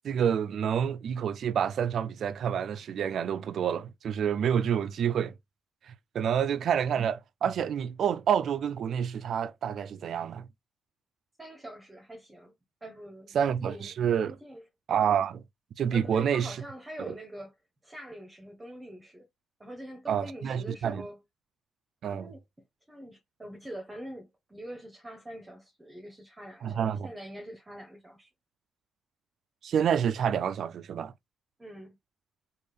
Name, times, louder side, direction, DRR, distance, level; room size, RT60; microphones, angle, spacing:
voice 1, 0.0-5.3 5.9-10.5 13.3-14.4 14.9-15.4 15.8-16.6 17.1-17.2 20.1-21.1 22.0-22.3 26.6-27.1 29.6-31.1, right 8 dB, 65° right, 0.3 m, -28 dB
voice 2, 11.4-12.5 12.8-13.9 14.2-14.6 15.9-17.5 17.8-19.3 19.6-21.2 22.1-22.4 22.9-28.3 31.6-32.0, right 1 dB, 15° right, 0.8 m, -44 dB
3.4 x 2.4 x 3.2 m
cardioid pair, 90°, 0 cm